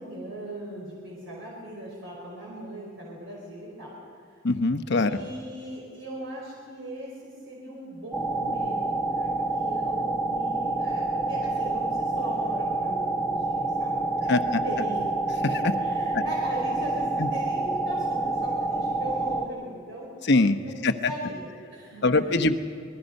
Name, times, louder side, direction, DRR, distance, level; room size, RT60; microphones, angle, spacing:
voice 1, 0.0-4.0 5.0-14.1 14.4-15.0 15.3-20.1 20.6-22.6, right 1 dB, 70° right, -4 dB, 4.8 m, -39 dB
voice 2, 4.4-5.2 14.3-14.6 16.1-16.2 17.2-17.3 20.3-21.1 22.0-22.6, left 2 dB, 60° left, 8 dB, 1.0 m, -23 dB
sound 1, 8.1-19.5, right 2 dB, ahead, 1.2 m, -28 dB
26.0 x 21.0 x 5.4 m, 2.4 s
head